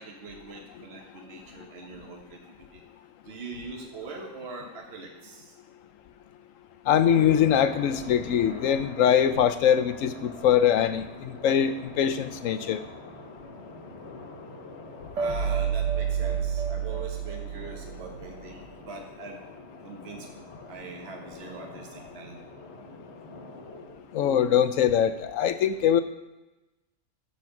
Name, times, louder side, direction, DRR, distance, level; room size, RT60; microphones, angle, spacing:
voice 1, 0.0-2.8 3.2-5.5 15.1-19.4 19.8-20.3 20.7-22.4, right 4 dB, 50° right, 1 dB, 1.4 m, -42 dB
voice 2, 6.9-12.8 24.1-26.0, left 9 dB, 70° left, 10 dB, 1.0 m, -23 dB
sound 1, 7.0-25.1, left 2 dB, 50° left, 1.7 m, -45 dB
sound 2, 15.2-18.3, right 8 dB, 65° right, 1.2 m, -29 dB
13.5 x 4.5 x 5.9 m, 1.0 s
omnidirectional pair, 1.5 m